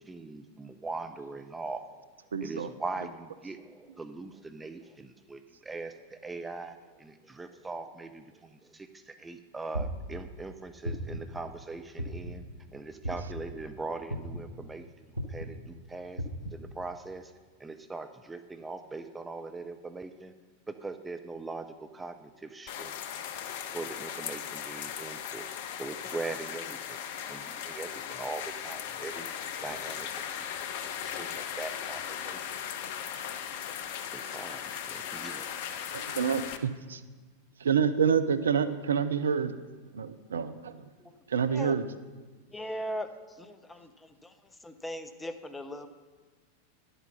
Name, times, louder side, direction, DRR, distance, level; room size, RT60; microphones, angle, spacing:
voice 1, 0.0-2.0 2.4-12.4 12.7-16.2 16.5-17.3 17.6-20.3 20.7-23.0 23.7-25.4 25.8-32.4 34.1-35.5, right 3 dB, 10° right, 8 dB, 0.5 m, -41 dB
voice 2, 2.3-2.7 35.9-36.7 37.7-39.6 39.9-40.9 41.3-41.8, right 7 dB, 70° right, 12 dB, 0.5 m, -27 dB
sound 1, 9.7-10.2 10.8-11.3 12.0-12.4 13.0-13.4 14.1-14.5 15.1-15.5 16.2-16.5, right 1 dB, 90° left, 1.1 m, -34 dB
sound 2, 22.7-36.6, left 9 dB, 50° left, 0.6 m, -38 dB
voice 3, 40.7-41.1 41.5-41.9 42.5-45.9, equal, 10° left, 8 dB, 0.8 m, -40 dB
11.0 x 8.1 x 5.6 m, 1.3 s
figure-of-eight pair, 90°, 0 cm